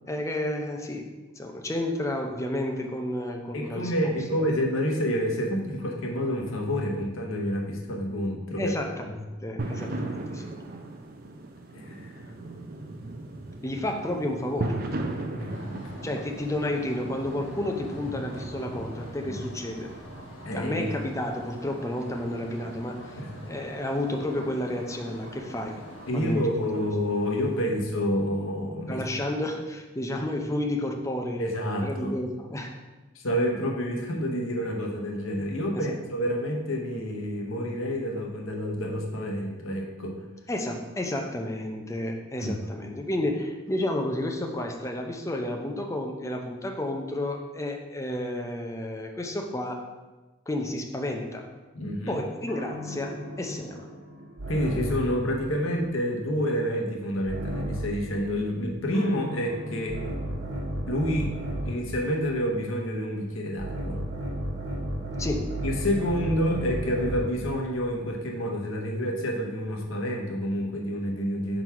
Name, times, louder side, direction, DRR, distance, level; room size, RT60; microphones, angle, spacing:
voice 1, 0.1-1.1 1.4-4.1 8.6-10.5 13.6-14.8 16.0-19.9 20.5-23.2 23.4-25.8 26.1-26.9 28.9-31.5 31.8-32.7 35.7-36.0 40.5-49.9 50.5-51.5 52.1-53.9 65.2-65.5, left 1 dB, 15° left, 3 dB, 0.5 m, -31 dB
voice 2, 3.5-8.7 9.1-9.2 11.7-12.2 15.3-16.2 19.3-19.4 20.4-20.9 23.2-23.3 26.1-29.0 31.4-32.2 33.1-40.2 42.4-42.6 51.7-52.2 54.5-60.0 60.9-61.4 61.6-64.0 65.6-71.6, equal, 90° left, 1 dB, 1.0 m, -28 dB
sound 1, 9.6-27.6, right 2 dB, 45° right, 0.5 m, -39 dB
sound 2, 15.5-26.3, equal, 70° left, 1.1 m, -46 dB
sound 3, 52.5-55.2 57.3-58.1 58.9-61.9 63.6-67.5, right 1 dB, 75° right, 1.2 m, -33 dB
4.6 x 4.0 x 5.7 m, 1.2 s
head